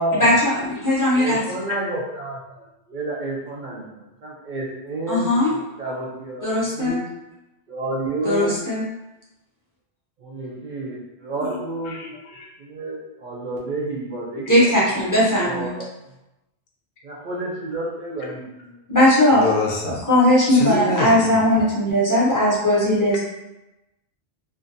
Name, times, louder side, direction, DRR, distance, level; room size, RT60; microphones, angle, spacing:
voice 1, 0.1-1.4 5.1-5.5 6.4-7.0 8.2-8.8 14.5-15.7 18.9-19.5 20.1-23.2, left 1 dB, 25° left, -7 dB, 0.5 m, -18 dB
voice 2, 1.1-2.4 2.9-7.1 7.7-8.6 10.2-12.0 12.6-14.7 15.4-15.9 17.0-18.8, right 2 dB, 60° right, -4 dB, 0.6 m, -30 dB
voice 3, 11.9-12.5 19.3-20.0 20.5-21.5, left 2 dB, 70° left, -2 dB, 0.7 m, -25 dB
2.5 x 2.2 x 2.6 m, 0.97 s
omnidirectional pair, 1.1 m